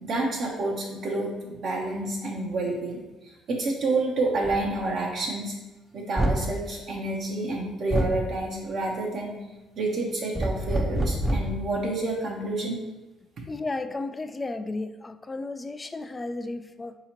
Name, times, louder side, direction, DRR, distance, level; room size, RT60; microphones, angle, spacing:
voice 1, 0.0-5.6 5.9-9.4 9.8-12.8 13.4-13.5, right 2 dB, 60° right, -2 dB, 0.6 m, -29 dB
sound 1, 4.4-4.6 6.2-6.5 7.9-8.2 10.3-11.6, right 1 dB, 10° right, 0.6 m, -26 dB
voice 2, 13.5-17.0, left 2 dB, 25° left, 10 dB, 0.3 m, -33 dB
4.7 x 2.8 x 2.9 m, 1.1 s
hypercardioid pair, 55°, 0 cm